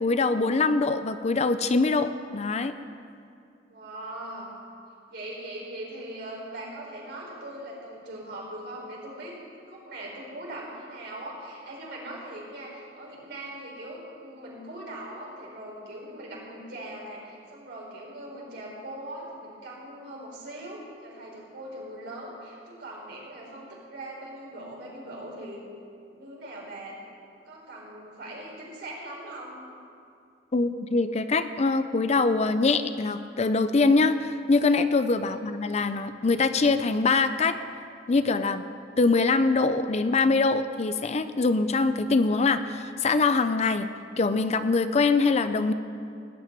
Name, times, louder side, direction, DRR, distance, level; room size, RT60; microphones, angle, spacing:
voice 1, 0.0-2.7 30.5-37.5 38.1-38.6 39.0-43.9 44.2-45.7, left 3 dB, 40° left, 11 dB, 0.5 m, -23 dB
voice 2, 3.7-4.5 5.1-25.6 26.1-27.0 27.4-29.6 35.2-35.5, right 1 dB, 65° right, -4 dB, 4.5 m, -40 dB
17.5 x 6.0 x 9.6 m, 2.5 s
head